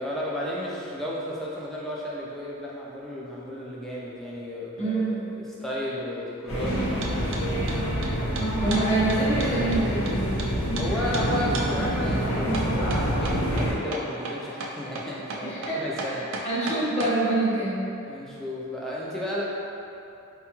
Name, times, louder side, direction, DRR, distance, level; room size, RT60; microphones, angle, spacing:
voice 1, 0.0-7.7 10.8-16.3 18.1-19.4, equal, ahead, -6 dB, 0.3 m, -33 dB
voice 2, 4.8-5.2 8.6-10.2 15.4-17.8, right 2 dB, 30° left, -8 dB, 0.8 m, -26 dB
sound 1, 6.5-13.7, equal, 80° left, 0.8 m, -26 dB
sound 2, 7.0-7.4 7.7-10.5 10.8-10.9 11.1-11.3 11.5-11.7 12.5-17.1, right 3 dB, 65° right, 0.4 m, -34 dB
4.5 x 2.3 x 2.9 m, 2.7 s
head